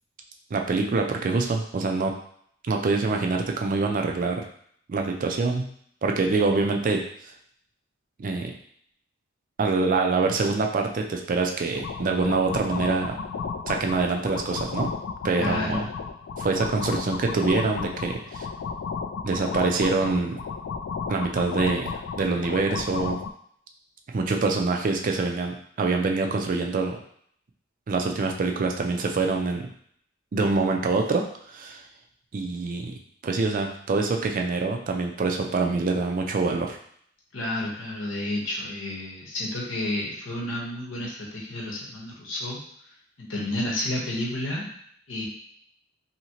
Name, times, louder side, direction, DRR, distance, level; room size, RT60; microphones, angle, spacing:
voice 1, 0.5-2.1 2.7-4.4 4.9-5.7 6.0-7.0 8.2-8.5 9.6-13.2 13.7-14.9 15.2-15.8 16.4-18.5 19.2-20.4 21.1-23.2 24.1-27.0 27.9-29.7 30.3-31.3 31.5-31.8 32.3-33.0 33.2-36.8, right 3 dB, 45° right, 3 dB, 0.4 m, -25 dB
sound 1, 11.7-23.3, left 5 dB, 65° left, 0.3 m, -33 dB
voice 2, 15.4-15.8 37.3-42.6 43.2-44.7 45.1-45.2, left 1 dB, 85° left, -3 dB, 1.0 m, -31 dB
2.8 x 2.8 x 2.8 m, 0.65 s
head